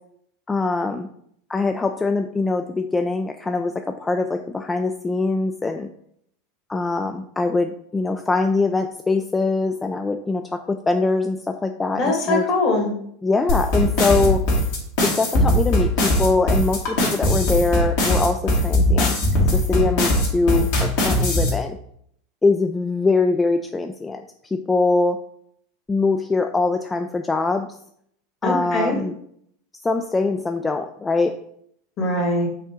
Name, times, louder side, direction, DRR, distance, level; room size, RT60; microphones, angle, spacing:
voice 1, 0.5-1.1 1.5-5.9 6.7-12.5 13.2-14.4 15.0-19.3 19.5-21.8 22.4-25.2 25.9-27.7 28.4-29.1 29.8-31.3, left 3 dB, 15° left, 6 dB, 0.3 m, -23 dB
voice 2, 11.9-12.9 28.4-29.0 32.0-32.5, left 2 dB, 45° left, 0 dB, 1.7 m, -22 dB
sound 1, 13.5-21.5, left 1 dB, 65° left, 1.8 m, -19 dB
5.4 x 2.7 x 3.5 m, 0.69 s
hypercardioid pair, 90°, 0 cm